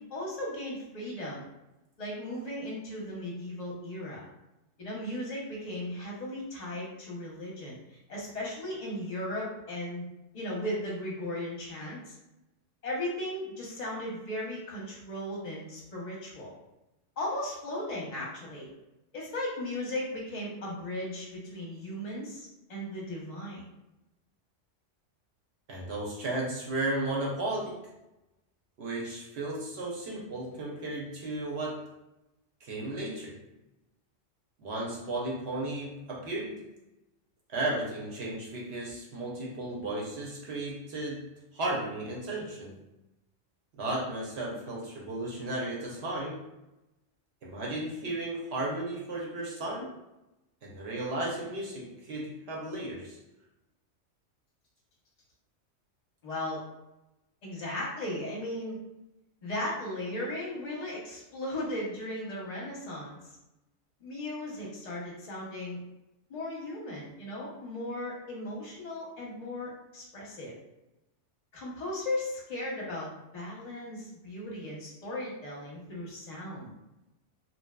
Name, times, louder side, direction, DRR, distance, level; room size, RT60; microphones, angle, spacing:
voice 1, 0.0-1.5 2.0-4.3 4.8-7.8 8.1-10.1 10.3-12.2 12.8-16.5 17.2-18.7 19.1-23.7 56.2-56.6 57.4-58.8 59.4-63.3 64.0-65.8 66.3-70.5 71.5-76.7, left 1 dB, 40° left, -4 dB, 0.7 m, -36 dB
voice 2, 25.7-27.8 28.8-31.8 32.6-33.4 34.6-36.6 37.5-41.2 41.5-42.8 43.7-46.4 47.4-49.9 50.6-53.2, right 2 dB, 65° right, -3 dB, 0.8 m, -34 dB
2.6 x 2.2 x 2.2 m, 0.94 s
omnidirectional pair, 1.3 m